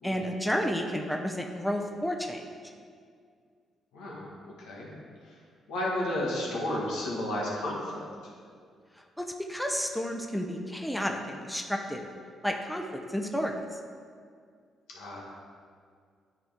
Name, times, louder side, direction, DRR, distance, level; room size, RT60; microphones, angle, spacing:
voice 1, 0.0-2.4 9.2-12.1 12.4-12.8 13.1-13.5, equal, 5° left, 2 dB, 0.6 m, -31 dB
voice 2, 3.9-4.3 4.6-5.0 5.2-5.4 5.7-8.3 14.9-15.2, left 1 dB, 90° left, -4 dB, 1.6 m, -33 dB
9.5 x 4.3 x 3.6 m, 2.1 s
cardioid pair, 90°, 0 cm